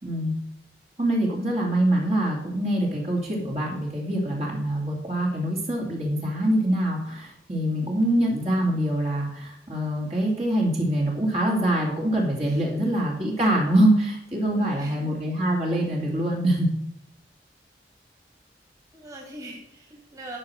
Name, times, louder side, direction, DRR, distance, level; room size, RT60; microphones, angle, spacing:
voice 1, 0.0-0.3 1.0-16.7, right 1 dB, 35° right, -3 dB, 2.8 m, -24 dB
voice 2, 12.4-12.8 14.4-15.1 18.9-20.4, right 1 dB, 20° right, -1 dB, 2.9 m, -42 dB
12.0 x 6.2 x 6.3 m, 0.77 s
head